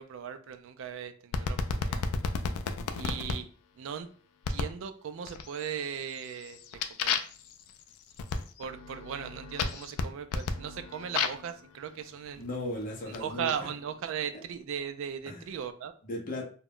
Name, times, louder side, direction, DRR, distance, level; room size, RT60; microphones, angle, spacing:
voice 1, 0.0-2.0 2.9-3.5 3.8-4.1 4.5-6.6 7.0-7.1 8.6-12.4 13.1-15.9, right 8 dB, 60° right, 9 dB, 0.3 m, -38 dB
sound 1, 1.3-3.4 4.4-4.8 5.3-5.7 6.1-11.5 12.3-13.5, left 5 dB, 80° left, 0.3 m, -33 dB
voice 2, 12.4-13.7 14.3-14.4 15.3-15.4 16.0-16.4, left 1 dB, 40° left, -1 dB, 0.6 m, -36 dB
2.2 x 2.0 x 3.6 m, 0.42 s
head